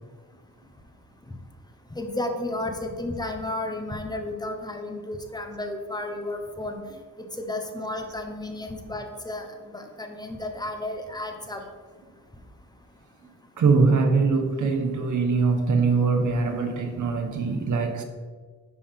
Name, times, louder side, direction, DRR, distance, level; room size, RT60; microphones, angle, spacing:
voice 1, 1.9-6.8 7.2-11.6, left 1 dB, 10° left, 4 dB, 0.8 m, -33 dB
voice 2, 13.6-18.0, right 4 dB, 65° right, 5 dB, 1.1 m, -22 dB
9.6 x 3.6 x 5.7 m, 1.5 s
wide cardioid pair, 160°, 32 cm